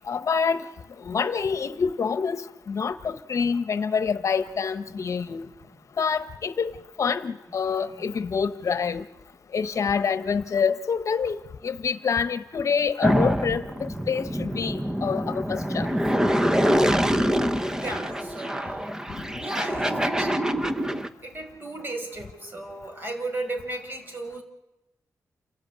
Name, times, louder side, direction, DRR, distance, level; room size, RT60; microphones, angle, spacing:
voice 1, 0.1-0.7 1.0-5.5 6.0-9.0 9.5-15.9, left 6 dB, 60° left, 12 dB, 1.0 m, -27 dB
voice 2, 4.9-5.4 5.7-5.8 7.9-8.7 16.8-17.4 17.8-19.1 19.4-20.5 21.2-24.4, right 2 dB, 35° right, 5 dB, 5.4 m, -36 dB
sound 1, 13.0-21.1, equal, 10° right, 1.1 m, -25 dB
28.5 x 13.5 x 8.8 m, 0.96 s
cardioid pair, 85°, 6 cm